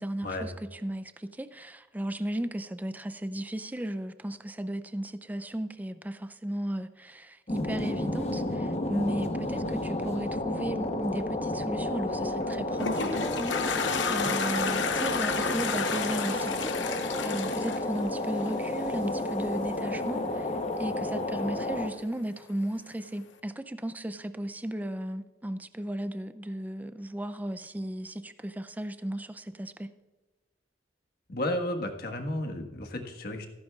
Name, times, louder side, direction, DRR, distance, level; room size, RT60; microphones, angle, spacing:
voice 1, 0.0-20.5 20.8-29.9, right 1 dB, 10° right, 0.4 m, -35 dB
sound 1, 7.5-21.9, left 1 dB, 35° left, 0.9 m, -31 dB
Toilet flush, 12.4-18.8, left 5 dB, 70° left, 0.9 m, -31 dB
voice 2, 31.3-33.5, left 1 dB, 55° left, 1.5 m, -33 dB
14.5 x 14.0 x 2.4 m
head